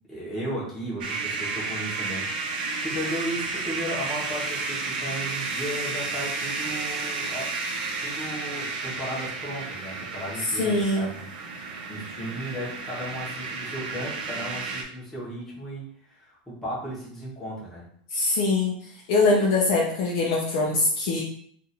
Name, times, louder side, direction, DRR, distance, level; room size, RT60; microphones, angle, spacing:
voice 1, 0.1-7.5 8.0-17.8, equal, 5° left, -7 dB, 1.0 m, -35 dB
sound 1, 1.0-14.8, right 3 dB, 70° right, 0.7 m, -32 dB
voice 2, 10.6-11.1 18.1-18.7 19.1-21.2, left 3 dB, 40° left, -2 dB, 0.6 m, -22 dB
2.6 x 2.5 x 4.2 m, 0.63 s
supercardioid pair, 175°, 5 cm